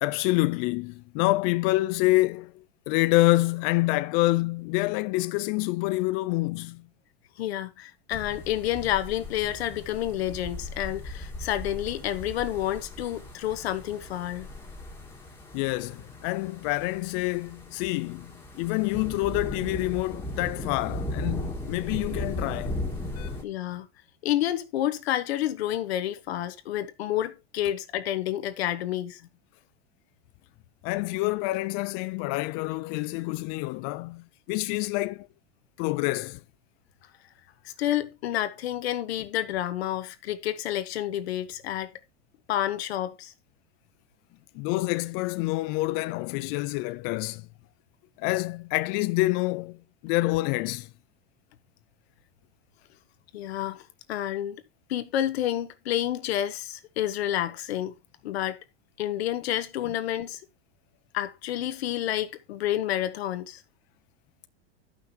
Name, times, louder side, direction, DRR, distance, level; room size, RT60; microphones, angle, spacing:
voice 1, 0.0-2.5 2.9-6.8 15.5-22.8 23.2-23.3 30.8-35.3 35.8-36.4 44.6-47.5 48.2-49.8 50.0-50.9, left 20 dB, 45° left, 0.4 m, -27 dB
voice 2, 7.4-14.5 23.4-23.9 24.2-29.2 37.6-41.9 42.5-43.3 53.3-54.6 54.9-57.9 58.2-58.6 59.0-60.4 61.1-63.6, left 12 dB, 90° left, 1.2 m, -29 dB
sound 1, 8.1-23.4, left 1 dB, 10° left, 1.5 m, -37 dB
14.0 x 5.9 x 2.8 m
supercardioid pair, 135°, 30 cm